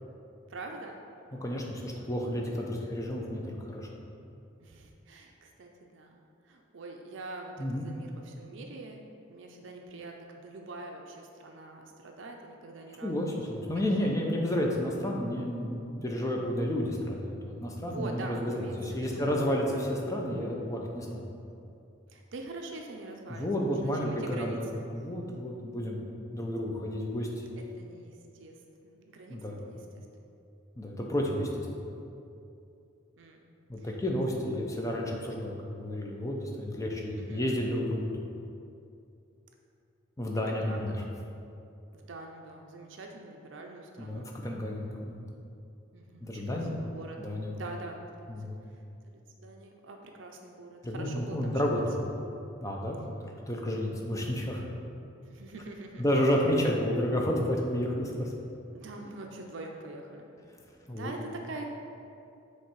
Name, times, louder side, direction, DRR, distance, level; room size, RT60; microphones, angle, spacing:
voice 1, 0.5-1.0 1.9-2.3 4.6-13.7 14.0-14.2 16.1-16.4 17.8-19.5 22.1-23.5 23.8-24.9 27.8-30.1 33.2-33.4 33.8-34.0 34.3-34.6 37.2-37.5 40.7-41.0 41.9-44.3 45.9-47.2 47.6-48.3 48.7-51.8 55.2-56.0 58.7-60.3 61.0-61.7, right 2 dB, 65° right, 2 dB, 0.5 m, -44 dB
voice 2, 1.4-3.9 7.6-7.9 13.0-21.2 23.3-26.0 26.3-27.3 29.3-29.6 30.8-31.9 33.7-38.3 40.2-40.9 44.0-45.2 46.2-46.8 47.2-47.5 48.3-48.6 50.8-52.1 52.6-53.1 53.5-54.6 56.0-58.3 60.9-61.1, left 1 dB, 15° left, -1 dB, 0.6 m, -31 dB
7.4 x 3.2 x 4.6 m, 2.7 s
head